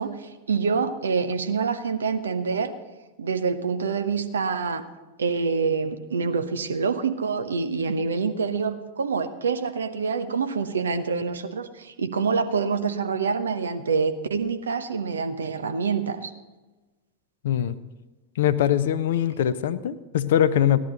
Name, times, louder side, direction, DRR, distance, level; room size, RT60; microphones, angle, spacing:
voice 1, 0.0-2.7 3.2-4.8 5.2-16.3, right 5 dB, 70° right, 9 dB, 0.9 m, -26 dB
voice 2, 17.4-17.7 18.4-20.8, left 10 dB, 55° left, 14 dB, 0.6 m, -22 dB
16.0 x 11.0 x 3.9 m, 1.2 s
figure-of-eight pair, 90°, 0 cm